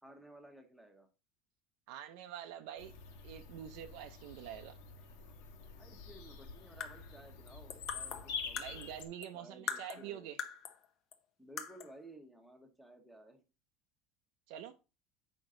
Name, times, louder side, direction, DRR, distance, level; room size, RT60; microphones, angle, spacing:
voice 1, 0.0-1.1 5.8-8.9 9.3-10.3 11.4-13.4, right 1 dB, ahead, 1.0 m, -56 dB
voice 2, 1.9-2.9 3.2-4.8 8.6-10.4 14.5-14.7, right 10 dB, 65° right, 0.5 m, -46 dB
Bird vocalization bird call bird song, 2.8-9.0, left 5 dB, 70° left, 1.5 m, -47 dB
sound 1, 6.6-9.4 9.7-10.8 11.1-11.2 11.6-12.0, left 7 dB, 35° left, 0.7 m, -43 dB
8.0 x 5.2 x 3.7 m
cardioid pair, 165°, 0 cm